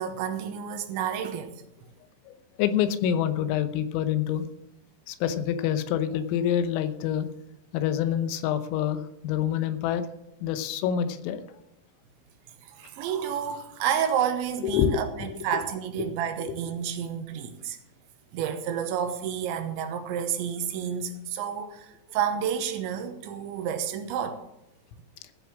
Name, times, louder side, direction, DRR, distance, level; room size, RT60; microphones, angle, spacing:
voice 1, 0.0-1.5 12.6-17.8 18.3-24.4, right 8 dB, 75° right, 3.1 m, -30 dB
voice 2, 2.3-4.5 5.1-7.3 7.7-10.0 10.4-11.4 14.6-15.3 16.0-16.1 16.5-16.6, left 9 dB, 85° left, 3.6 m, -27 dB
15.5 x 6.9 x 6.2 m
omnidirectional pair, 5.8 m